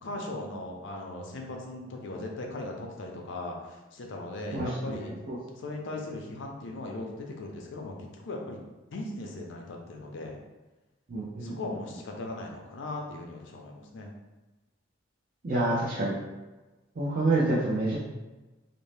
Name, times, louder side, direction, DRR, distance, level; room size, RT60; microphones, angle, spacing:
voice 1, 0.0-5.1 5.6-8.6 8.9-10.4 11.4-14.1, left 2 dB, 65° left, 1 dB, 0.5 m, -38 dB
voice 2, 4.5-5.0 5.3-5.4 11.1-11.5 15.4-16.1 17.0-18.0, right 2 dB, 45° right, -8 dB, 0.5 m, -27 dB
2.6 x 2.0 x 3.2 m, 1.1 s
head